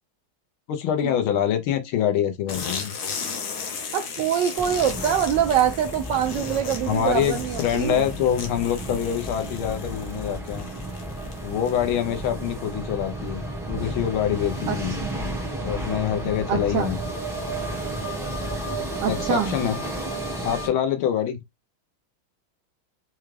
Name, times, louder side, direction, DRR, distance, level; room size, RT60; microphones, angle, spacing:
voice 1, 0.7-2.9 6.9-10.7 11.4-15.0 15.6-17.0 19.1-19.8 20.4-21.4, left 10 dB, 75° left, 1.5 m, -25 dB
sound 1, 2.5-12.0, left 6 dB, 60° left, 1.1 m, -36 dB
voice 2, 3.9-8.1 14.7-15.1 16.5-16.9 19.0-19.5, right 9 dB, 75° right, 1.0 m, -24 dB
sound 2, 4.6-20.7, right 1 dB, 5° right, 0.5 m, -32 dB
4.7 x 2.3 x 3.2 m
omnidirectional pair, 2.4 m